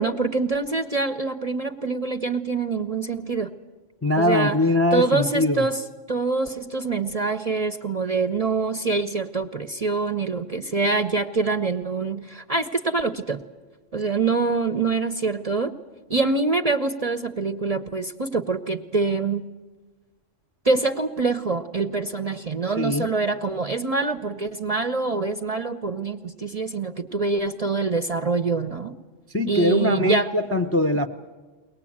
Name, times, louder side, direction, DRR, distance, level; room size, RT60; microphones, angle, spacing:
voice 1, 0.0-3.5 4.2-4.6 4.9-5.8 6.1-13.4 13.9-15.7 16.1-19.4 20.6-28.9 29.5-30.3, right 3 dB, 35° right, 6 dB, 0.7 m, -25 dB
voice 2, 4.0-5.7 22.8-23.1 29.3-31.1, left 1 dB, 15° left, 7 dB, 0.6 m, -22 dB
22.5 x 19.5 x 8.6 m, 1.3 s
omnidirectional pair, 1.3 m